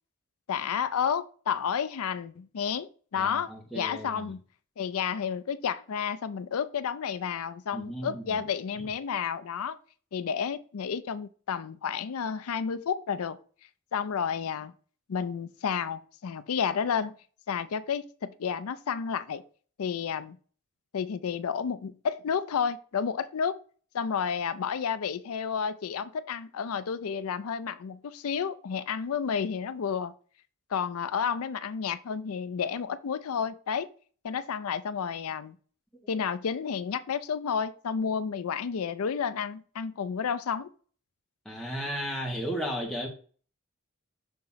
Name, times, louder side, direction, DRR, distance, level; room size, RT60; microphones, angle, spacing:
voice 1, 0.5-4.4 4.8-9.8 10.1-13.4 13.9-14.7 15.1-17.1 17.5-19.4 19.8-20.4 20.9-23.6 23.9-30.1 30.7-33.9 34.2-35.5 36.1-40.7, left 7 dB, 85° left, 0.4 m, -31 dB
voice 2, 3.1-4.2 7.7-8.4 8.8-8.9 41.4-43.1, equal, ahead, 1.3 m, -34 dB
6.3 x 2.9 x 5.6 m
head